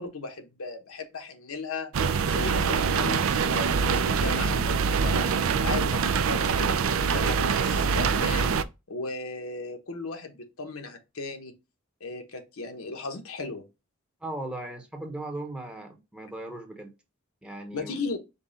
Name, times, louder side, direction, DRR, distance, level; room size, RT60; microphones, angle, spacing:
voice 1, 0.0-1.9 2.2-8.5 8.9-11.5 12.0-13.6 17.7-18.2, left 3 dB, 75° left, 1.0 m, -36 dB
sound 1, 1.9-8.6, right 5 dB, 65° right, 0.4 m, -24 dB
voice 2, 14.2-16.9 17.4-17.9, right 1 dB, 5° right, 0.9 m, -37 dB
5.3 x 2.3 x 3.9 m
head